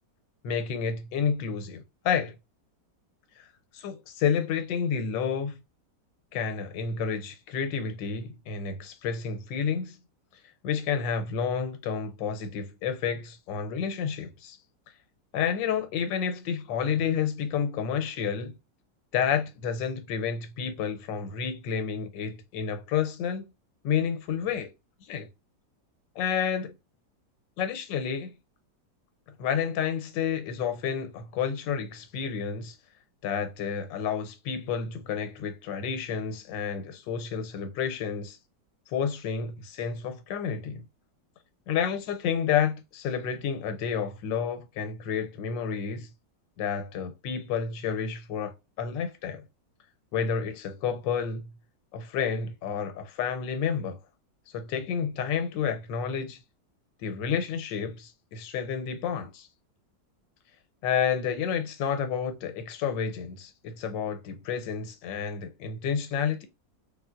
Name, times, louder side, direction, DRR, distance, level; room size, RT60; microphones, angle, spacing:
voice 1, 0.4-2.3 3.4-3.5 3.7-5.6 6.3-10.0 10.6-14.6 15.3-18.6 19.1-23.5 23.8-24.7 25.0-25.3 26.2-26.7 27.6-28.3 29.4-32.8 33.2-38.4 38.9-40.8 41.7-46.1 46.6-49.4 50.1-51.5 51.9-54.0 54.5-56.4 57.0-59.5 60.8-66.5, left 7 dB, 90° left, 1.3 m, -30 dB
3.3 x 2.7 x 2.4 m
omnidirectional pair, 2.0 m